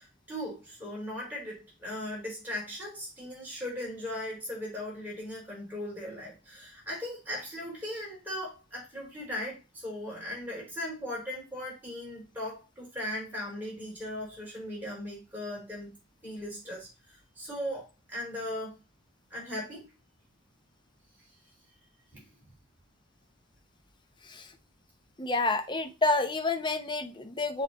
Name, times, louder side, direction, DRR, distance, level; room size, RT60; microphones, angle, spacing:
voice 1, 0.0-15.9 16.2-18.7 19.3-19.9 22.1-22.2, left 1 dB, 10° right, 3.6 m, -38 dB
voice 2, 25.2-27.6, left 3 dB, 20° left, 0.7 m, -29 dB
7.5 x 3.3 x 4.1 m
head